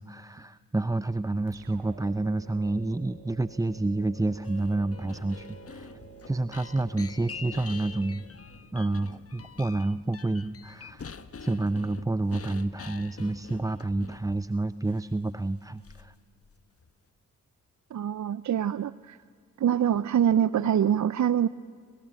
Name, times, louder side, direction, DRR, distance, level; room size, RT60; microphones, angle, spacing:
voice 1, 0.0-6.0 6.3-8.3 8.7-11.1 11.4-16.1, right 2 dB, 10° right, 15 dB, 0.6 m, -29 dB
sound 1, 1.5-9.0, right 6 dB, 90° right, 2.3 m, -51 dB
sound 2, 4.4-14.5 14.9-15.0 15.8-16.2 16.4-16.9, left 5 dB, 40° left, 1.4 m, -45 dB
voice 2, 17.9-19.2 19.6-21.5, right 9 dB, 55° right, 17 dB, 0.7 m, -24 dB
29.0 x 26.0 x 7.7 m, 2.1 s
supercardioid pair, 45°, 35 cm